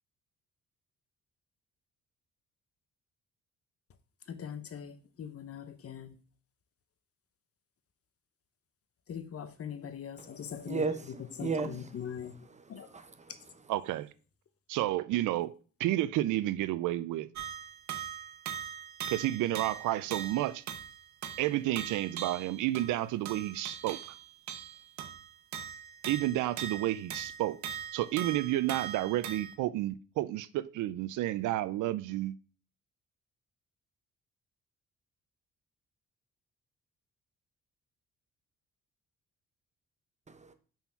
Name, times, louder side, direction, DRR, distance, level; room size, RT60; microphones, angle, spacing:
voice 1, 4.3-6.1 9.1-10.9 11.4-12.3 12.7-12.9, left 8 dB, 50° left, 0.9 m, -41 dB
voice 2, 10.6-11.8 12.2-12.6 12.9-13.1 40.3-40.5, right 4 dB, 25° right, 0.9 m, -35 dB
voice 3, 13.7-14.1 14.7-15.5 15.8-17.3 19.1-20.6 21.4-24.0 26.1-27.6 27.9-32.3, right 15 dB, 85° right, 0.5 m, -31 dB
sound 1, 17.3-29.6, right 9 dB, 65° right, 0.9 m, -41 dB
5.7 x 4.3 x 5.7 m
cardioid pair, 90°, 30 cm